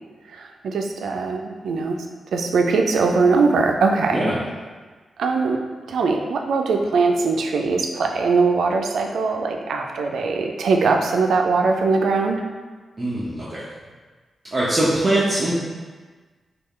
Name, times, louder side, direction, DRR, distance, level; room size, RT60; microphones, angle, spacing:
voice 1, 0.3-2.0 2.3-4.2 5.2-5.6 5.9-12.4, right 4 dB, 80° right, 3 dB, 0.3 m, -21 dB
voice 2, 13.0-13.6 14.5-15.5, right 1 dB, 25° right, -8 dB, 0.5 m, -21 dB
3.2 x 2.3 x 3.6 m, 1.4 s
wide cardioid pair, 160°, 0 cm